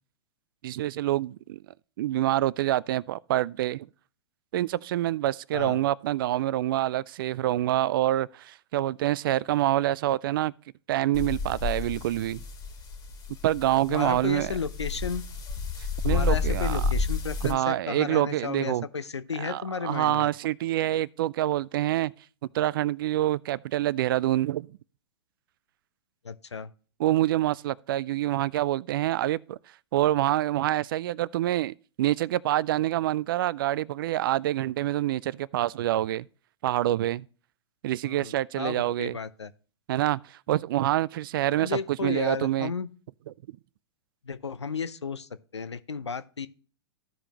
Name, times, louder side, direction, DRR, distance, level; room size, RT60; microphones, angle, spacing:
voice 1, 0.6-1.6 2.0-3.9 4.5-10.5 10.9-12.4 13.4-14.5 16.0-16.8 17.4-18.9 19.4-22.1 22.5-24.7 27.0-29.6 29.9-36.2 36.6-37.2 37.8-39.2 39.9-42.7, right 14 dB, 55° right, 0.4 m, -26 dB
voice 2, 5.5-5.8 13.9-15.2 16.1-20.3 26.2-26.7 38.0-39.5 41.6-42.9 44.2-46.5, left 5 dB, 85° left, 0.6 m, -33 dB
sound 1, 11.1-17.5, left 4 dB, 30° left, 1.7 m, -31 dB
15.0 x 5.0 x 2.9 m
figure-of-eight pair, 105°, 14 cm